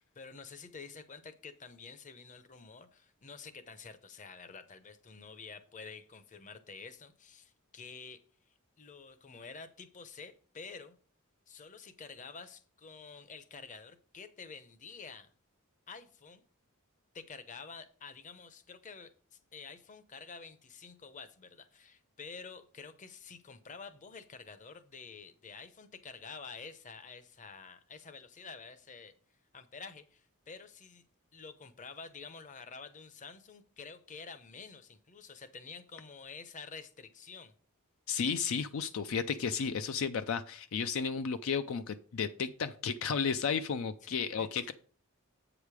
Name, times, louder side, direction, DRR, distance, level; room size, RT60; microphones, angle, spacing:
voice 1, 0.2-8.2 8.8-11.0 11.5-15.3 15.9-16.4 17.1-29.1 29.5-31.0 31.3-37.5 44.0-44.7, left 5 dB, 35° left, 11 dB, 0.7 m, -49 dB
voice 2, 38.1-44.7, left 6 dB, 65° left, 10 dB, 0.4 m, -33 dB
8.1 x 5.0 x 4.8 m, 0.43 s
head